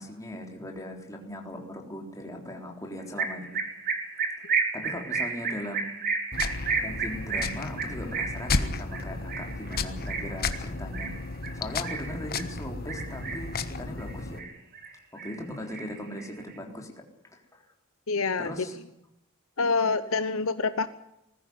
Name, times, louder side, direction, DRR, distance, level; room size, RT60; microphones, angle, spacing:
voice 1, 0.0-3.6 4.7-5.9 6.8-11.1 11.5-14.4 15.1-16.9 17.3-17.7 18.4-18.7, left 1 dB, 15° left, 1 dB, 3.8 m, -39 dB
sound 1, 3.2-12.5 12.9-13.6 14.0-14.9 15.2-16.5, right 5 dB, 45° right, 2.9 m, -32 dB
sound 2, 6.3-14.4, left 3 dB, 45° left, 1.3 m, -33 dB
voice 2, 18.1-18.5 19.6-20.9, left 4 dB, 65° left, 11 dB, 0.9 m, -26 dB
20.0 x 15.0 x 9.6 m, 0.83 s
head